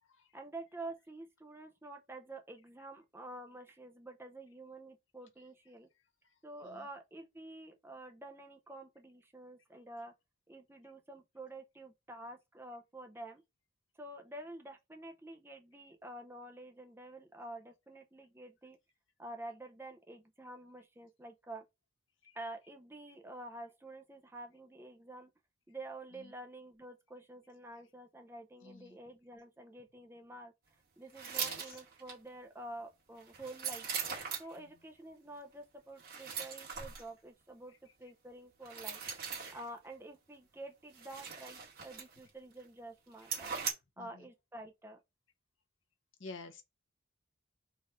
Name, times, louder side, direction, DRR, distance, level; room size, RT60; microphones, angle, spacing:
voice 1, 0.3-5.9 6.4-10.1 10.5-13.4 14.0-18.8 19.2-21.6 22.3-25.3 25.7-30.5 31.0-33.9 34.4-39.0 39.5-43.5 44.0-45.0, right 2 dB, 10° right, 0.5 m, -49 dB
voice 2, 28.6-29.0 31.4-31.8 34.6-34.7 44.0-44.3 46.2-46.6, left 3 dB, 65° left, 0.8 m, -51 dB
sound 1, 31.1-32.1 33.2-34.6 36.0-37.1 38.6-39.7 40.9-42.3 42.6-42.7 43.2-43.7, right 6 dB, 45° right, 1.8 m, -40 dB
4.1 x 2.5 x 4.8 m
head